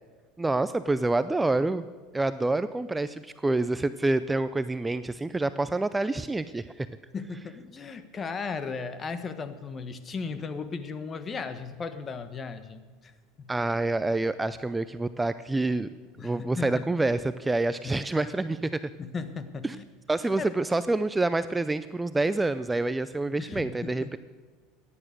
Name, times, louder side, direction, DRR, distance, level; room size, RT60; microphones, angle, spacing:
voice 1, 0.4-1.9 2.1-6.9 13.5-15.9 16.2-18.8 19.6-19.8 20.1-24.2, right 2 dB, 10° right, 13 dB, 0.5 m, -27 dB
voice 2, 7.1-13.1 13.4-13.5 16.2-16.8 19.0-19.8 20.4-20.5 23.4-23.7 24.0-24.1, left 5 dB, 30° left, 11 dB, 1.3 m, -36 dB
15.0 x 10.0 x 6.6 m, 1.4 s
supercardioid pair, 95°, 0 cm